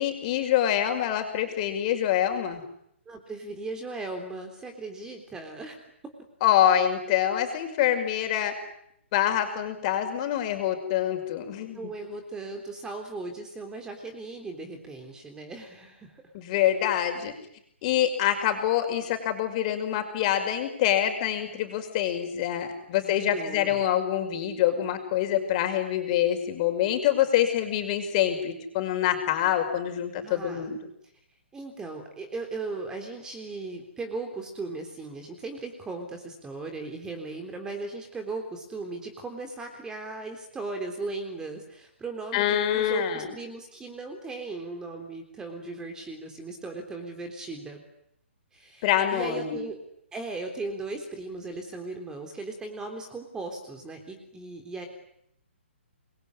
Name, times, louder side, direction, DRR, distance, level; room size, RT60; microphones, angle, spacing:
voice 1, 0.0-2.6 6.4-8.5 9.1-11.8 16.3-17.3 17.8-30.8 42.3-43.2 48.8-49.6, left 11 dB, 35° left, 5 dB, 5.7 m, -25 dB
voice 2, 3.1-5.8 11.7-16.2 22.9-23.8 30.2-30.7 31.5-47.8 48.5-49.8 50.1-54.9, right 3 dB, 10° right, 5 dB, 3.7 m, -37 dB
26.5 x 22.5 x 9.9 m, 0.74 s
hypercardioid pair, 145°, 7 cm